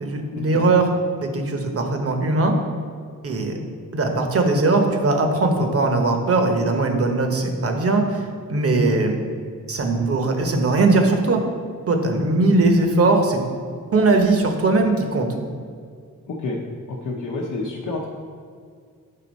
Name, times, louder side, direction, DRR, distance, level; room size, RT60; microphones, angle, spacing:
voice 1, 0.0-0.9 1.2-2.5 3.2-3.6 3.9-9.1 9.7-11.4 11.9-13.4 13.9-15.3, right 2 dB, 45° right, 4 dB, 0.9 m, -20 dB
voice 2, 16.3-16.6 16.9-18.1, left 3 dB, 70° left, -2 dB, 0.8 m, -29 dB
7.8 x 4.0 x 5.2 m, 2.2 s
wide cardioid pair, 140°, 32 cm